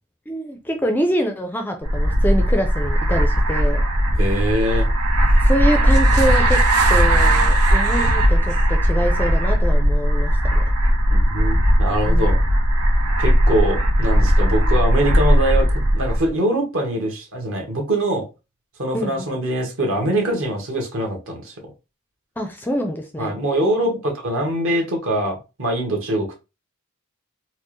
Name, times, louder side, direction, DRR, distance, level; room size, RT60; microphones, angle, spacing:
voice 1, 0.3-3.8 5.4-6.6 6.9-10.6 12.1-12.3 18.9-19.1 22.4-23.4, equal, 10° left, 0.4 m, -25 dB
sound 1, 1.8-16.3, equal, 90° right, 0.9 m, -17 dB
voice 2, 4.2-4.9 11.1-12.4 13.2-18.2 18.8-21.5 23.2-26.3, right 1 dB, 60° right, 1.2 m, -23 dB
4.4 x 2.1 x 3.1 m
head